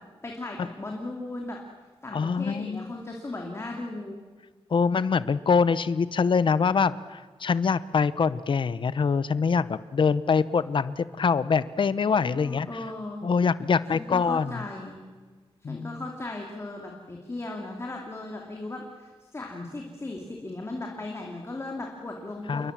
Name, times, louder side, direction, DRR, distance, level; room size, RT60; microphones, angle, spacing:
voice 1, 0.2-1.6 2.0-4.2 12.3-13.2 13.9-15.0 15.6-22.7, left 2 dB, 30° left, 0 dB, 2.7 m, -37 dB
voice 2, 2.1-2.9 4.7-12.7 13.2-14.5 15.6-15.9 22.5-22.7, left 5 dB, 55° left, 16 dB, 0.8 m, -24 dB
28.5 x 22.5 x 7.4 m, 1.4 s
wide cardioid pair, 150°, 10 cm